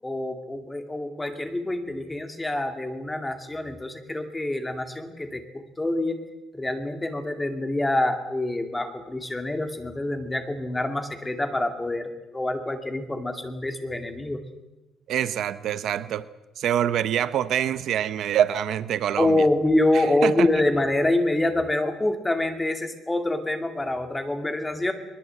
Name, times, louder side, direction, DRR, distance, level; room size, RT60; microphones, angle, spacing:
voice 1, 0.0-6.2 6.5-14.4 19.2-24.9, left 1 dB, 10° left, 6 dB, 2.4 m, -26 dB
voice 2, 15.1-16.3 16.6-19.5 20.2-20.5, right 10 dB, 55° right, 13 dB, 0.8 m, -25 dB
21.5 x 21.5 x 7.9 m, 1.0 s
cardioid pair, 150°, 0 cm